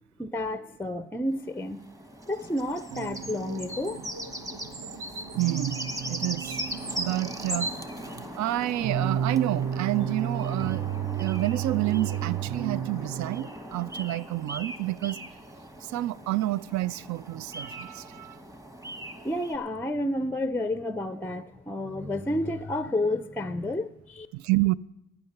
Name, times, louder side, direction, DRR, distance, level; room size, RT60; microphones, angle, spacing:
voice 1, 0.2-1.8 2.3-4.1 19.2-24.3, left 1 dB, 5° left, 0.5 m, -30 dB
sound 1, 1.3-19.6, equal, 10° right, 1.1 m, -39 dB
sound 2, 2.9-13.5, right 9 dB, 50° right, 0.8 m, -33 dB
voice 2, 5.4-5.8 6.1-6.6 7.0-7.7 8.2-10.9 11.2-15.2 15.8-18.4 24.3-24.7, right 16 dB, 70° right, 0.4 m, -29 dB
14.0 x 9.7 x 5.9 m
cardioid pair, 90°, 30 cm